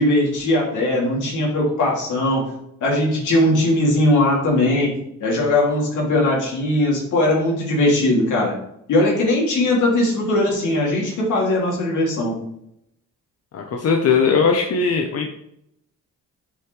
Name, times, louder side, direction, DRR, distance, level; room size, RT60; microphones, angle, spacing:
voice 1, 0.0-2.5 2.8-4.9 5.2-8.5 8.9-12.4, left 1 dB, 80° left, -2 dB, 2.8 m, -19 dB
voice 2, 13.5-15.3, left 5 dB, 55° left, 2 dB, 1.0 m, -19 dB
7.8 x 5.6 x 3.3 m, 0.75 s
cardioid pair, 90°, 30 cm